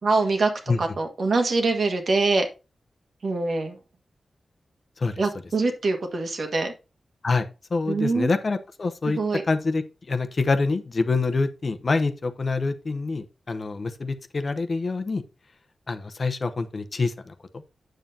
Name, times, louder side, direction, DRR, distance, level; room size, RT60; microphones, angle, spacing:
voice 1, 0.0-0.5 0.8-2.5 3.2-3.7 5.2-6.7 7.9-8.3 9.0-9.4, right 3 dB, 55° right, 1.5 m, -24 dB
voice 2, 7.2-9.2 9.5-15.2 15.9-17.6, left 3 dB, 40° left, 0.8 m, -26 dB
9.1 x 7.2 x 2.8 m
wide cardioid pair, 175°, 0 cm